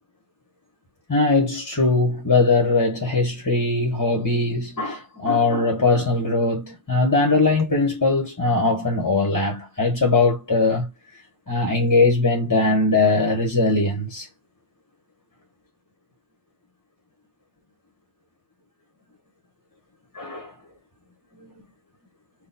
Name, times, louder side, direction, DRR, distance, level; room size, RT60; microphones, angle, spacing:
voice 1, 1.1-10.9 11.5-14.3 20.1-20.5, left 3 dB, 20° left, 0.9 m, -20 dB
4.1 x 2.3 x 3.9 m
omnidirectional pair, 1.1 m